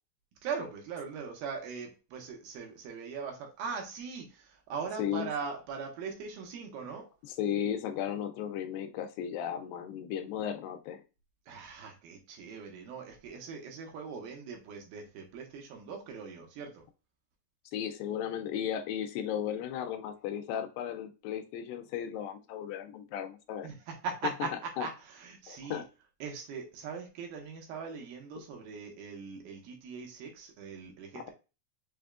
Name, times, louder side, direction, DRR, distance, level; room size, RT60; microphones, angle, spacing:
voice 1, 0.4-7.0 11.5-16.8 23.6-25.8 26.2-31.3, right 5 dB, 80° right, 2 dB, 2.9 m, -40 dB
voice 2, 5.0-5.3 7.4-11.0 17.7-23.7 24.8-24.9 25.5-25.9 31.1-31.3, left 9 dB, 80° left, 8 dB, 2.3 m, -35 dB
6.2 x 3.4 x 2.4 m, 0.31 s
omnidirectional pair, 4.2 m